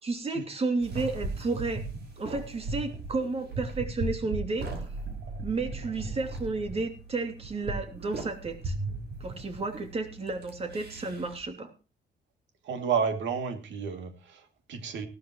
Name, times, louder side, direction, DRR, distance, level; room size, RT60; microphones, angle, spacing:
voice 1, 0.0-1.8 2.2-4.7 5.4-8.7 9.2-11.7, right 3 dB, 35° right, 6 dB, 2.7 m, -32 dB
sound 1, 0.8-11.4, right 3 dB, 65° right, 5.8 m, -37 dB
voice 2, 12.6-15.1, right 6 dB, 80° right, 6 dB, 2.6 m, -31 dB
17.5 x 12.5 x 3.0 m, 0.34 s
cardioid pair, 125°, 18 cm